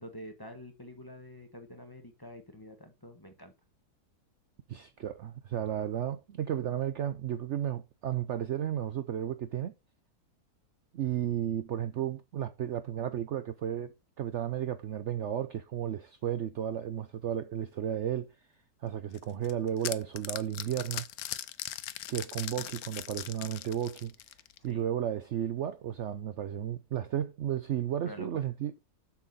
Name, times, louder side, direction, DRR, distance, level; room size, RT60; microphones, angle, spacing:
voice 1, 0.0-3.5 24.7-24.8 28.0-28.3, equal, 15° left, 1.2 m, -47 dB
voice 2, 4.7-9.7 10.9-18.3 18.8-21.1 22.1-24.1 24.6-28.7, right 10 dB, 65° right, 0.8 m, -33 dB
sound 1, 19.1-24.7, left 12 dB, 75° left, 1.1 m, -40 dB
7.3 x 7.0 x 4.0 m
omnidirectional pair, 1.7 m